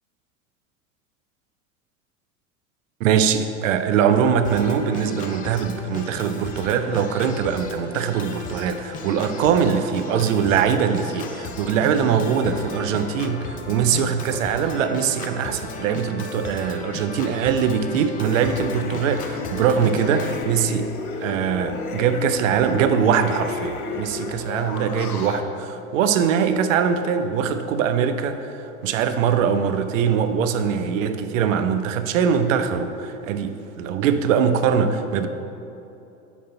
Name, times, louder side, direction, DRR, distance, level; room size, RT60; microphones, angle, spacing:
voice 1, 3.0-20.9 21.2-35.3, right 7 dB, 65° right, 9 dB, 0.6 m, -22 dB
Organ, 4.4-20.4, left 3 dB, 20° left, 0.4 m, -36 dB
sound 1, 18.2-25.4, left 4 dB, 85° left, 0.6 m, -32 dB
5.1 x 5.0 x 5.4 m, 2.8 s
figure-of-eight pair, 80°, 43 cm